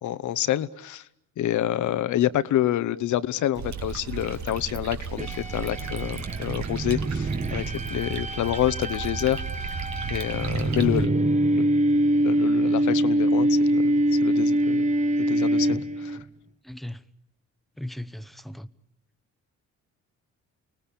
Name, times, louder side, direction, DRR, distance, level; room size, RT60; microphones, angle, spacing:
voice 1, 0.0-1.0 1.4-9.8 10.1-11.1 11.5-11.6 12.2-14.9 15.2-16.2, left 12 dB, 75° left, 1.1 m, -28 dB
sound 1, 3.6-11.1, right 5 dB, 65° right, 2.2 m, -35 dB
sound 2, 5.2-16.2, right 1 dB, 25° right, 1.1 m, -24 dB
voice 2, 16.6-17.1 17.8-18.7, left 1 dB, ahead, 1.0 m, -37 dB
29.5 x 19.0 x 8.6 m
cardioid pair, 90°, 30 cm